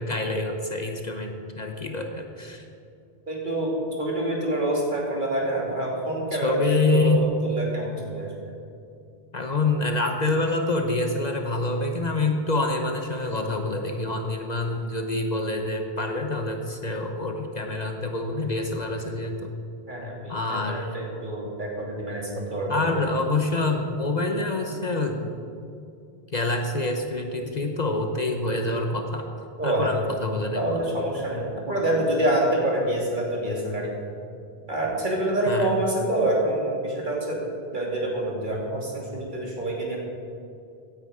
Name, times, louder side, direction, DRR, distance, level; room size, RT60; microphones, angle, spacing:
voice 1, 0.0-2.6 6.4-7.3 9.3-19.5 20.3-20.9 22.7-25.3 26.3-29.2 29.6-30.8 35.5-35.8, left 2 dB, 45° left, 4 dB, 1.1 m, -26 dB
voice 2, 3.3-8.5 19.9-23.0 29.6-29.9 30.5-33.9 34.7-37.4 37.7-40.0, right 1 dB, 50° right, -3 dB, 2.8 m, -27 dB
16.5 x 9.7 x 4.9 m, 2.5 s
omnidirectional pair, 1.0 m